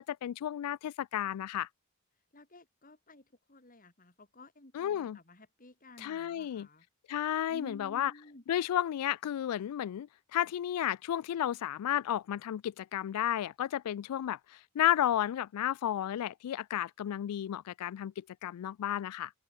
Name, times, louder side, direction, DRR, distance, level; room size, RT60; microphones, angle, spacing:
voice 1, 0.0-1.7 4.7-5.2 6.0-6.7 7.1-8.1 8.5-14.4 14.7-19.3, left 11 dB, 85° left, 0.3 m, -32 dB
voice 2, 2.3-3.2 3.5-6.8 7.5-8.4, left 1 dB, 40° left, 3.3 m, -53 dB
head